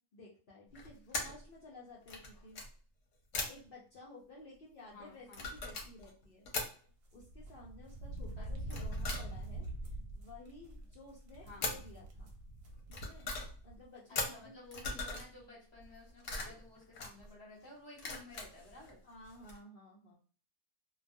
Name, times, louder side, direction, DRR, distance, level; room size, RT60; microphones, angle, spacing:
voice 1, 0.1-2.6 3.5-6.5 7.1-9.7 10.1-12.3 12.9-13.3 13.6-15.1 19.0-20.2, left 2 dB, 55° left, -4 dB, 0.7 m, -54 dB
sound 1, 0.7-1.5 2.0-2.7 3.3-3.7 5.2-6.7 8.6-9.7 11.6-11.9 12.7-13.6 14.2-15.3 15.8-17.3 18.0-18.9 19.2-19.6, left 3 dB, 80° left, 1.0 m, -40 dB
voice 2, 4.9-5.5 8.4-8.8 11.4-11.7 14.1-19.0, left 2 dB, 20° left, -6 dB, 1.0 m, -54 dB
sound 2, 7.1-13.8 14.2-14.3 15.4-15.5 15.7-16.0, right 1 dB, 60° right, 0.8 m, -44 dB
2.3 x 2.3 x 2.5 m, 0.41 s
omnidirectional pair, 1.3 m